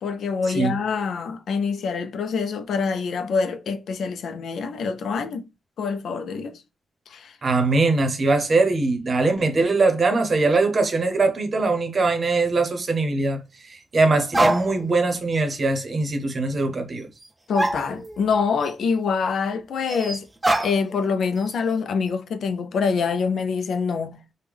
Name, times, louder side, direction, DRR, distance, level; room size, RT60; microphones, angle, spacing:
voice 1, 0.0-5.5 5.8-6.6 7.1-7.4 14.4-14.6 17.5-20.3 20.6-24.2, left 5 dB, 80° left, 0.4 m, -25 dB
voice 2, 7.4-17.1, right 3 dB, 45° right, 0.8 m, -21 dB
sound 1, 12.3-12.4 14.0-14.1 14.3-15.0 15.3-15.4 17.2-17.3 17.5-18.4 18.6-18.7 19.9-21.1 21.4-21.8, right 1 dB, 20° right, 0.5 m, -25 dB
3.4 x 2.2 x 3.3 m
cardioid pair, 95°, 0 cm